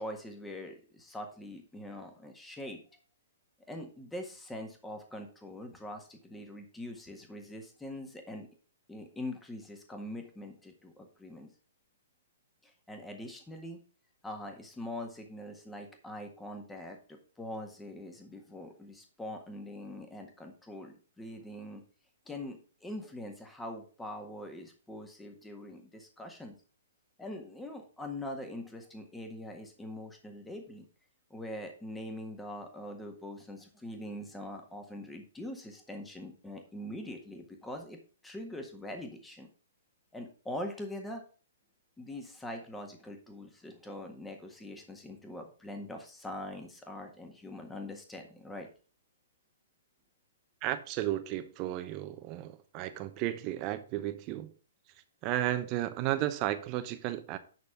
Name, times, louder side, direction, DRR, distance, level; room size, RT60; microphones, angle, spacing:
voice 1, 0.0-2.8 3.7-8.5 8.9-11.5 12.6-13.8 14.2-21.8 22.2-26.5 27.2-30.9 31.3-38.0 38.2-39.5 40.1-41.2 42.0-48.7, left 1 dB, 5° left, 1.6 m, -43 dB
voice 2, 50.6-54.5 55.2-57.4, right 14 dB, 35° right, 1.0 m, -33 dB
11.0 x 4.2 x 5.1 m
hypercardioid pair, 130°, 0 cm